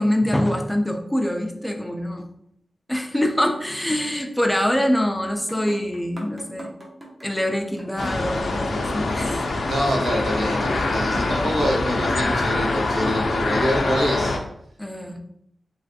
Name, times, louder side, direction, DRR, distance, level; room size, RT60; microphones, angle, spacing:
voice 1, 0.0-2.3 2.9-6.7 7.2-9.7 14.8-15.2, left 1 dB, 5° left, 4 dB, 0.4 m, -24 dB
sound 1, 5.3-10.1, right 1 dB, 25° right, 0.7 m, -42 dB
sound 2, 8.0-14.4, left 2 dB, 75° left, 0.4 m, -24 dB
voice 2, 9.7-14.4, equal, 75° right, -3 dB, 1.0 m, -25 dB
3.2 x 2.4 x 2.6 m, 0.73 s
wide cardioid pair, 120°, 0 cm